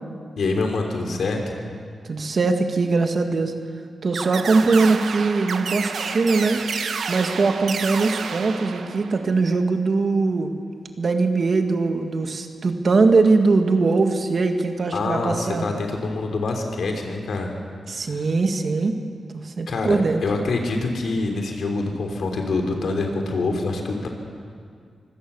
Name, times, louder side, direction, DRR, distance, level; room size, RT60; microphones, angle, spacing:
voice 1, 0.4-1.4 14.9-17.5 19.7-24.1, left 3 dB, 75° left, 3 dB, 3.4 m, -25 dB
voice 2, 2.1-3.6 4.0-6.6 7.1-10.5 11.0-15.7 17.9-19.0 19.3-20.2, right 3 dB, 55° right, 5 dB, 2.0 m, -21 dB
sound 1, 4.1-9.3, right 5 dB, 75° right, 1.3 m, -30 dB
24.5 x 17.0 x 7.1 m, 2.2 s
cardioid pair, 75°, 0 cm